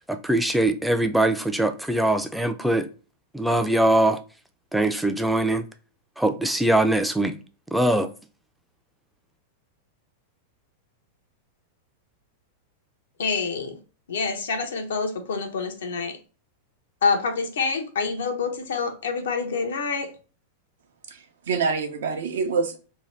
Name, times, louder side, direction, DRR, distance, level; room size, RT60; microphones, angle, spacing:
voice 1, 0.1-2.9 3.3-4.2 4.7-5.6 6.2-7.4 7.7-8.1, right 1 dB, ahead, 0.4 m, -22 dB
voice 2, 13.2-13.8 14.1-16.2 17.0-20.1, left 5 dB, 80° left, 0.6 m, -27 dB
voice 3, 21.1-22.8, right 5 dB, 80° right, 0.5 m, -26 dB
2.7 x 2.1 x 3.1 m
hypercardioid pair, 110°, 0 cm